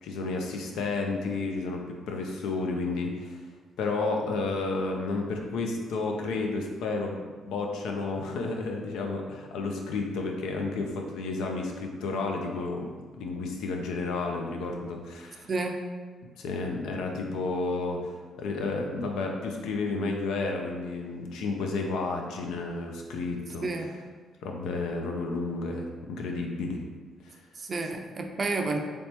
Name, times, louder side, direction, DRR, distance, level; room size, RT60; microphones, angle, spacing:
voice 1, 0.0-3.3 3.8-12.9 13.2-15.5 16.4-23.7 24.4-26.8 27.2-27.3, left 3 dB, 85° left, 1 dB, 0.5 m, -31 dB
voice 2, 23.6-23.9 27.6-28.8, right 3 dB, 40° right, 3 dB, 0.4 m, -30 dB
3.4 x 3.0 x 2.9 m, 1.4 s
cardioid pair, 90°, 0 cm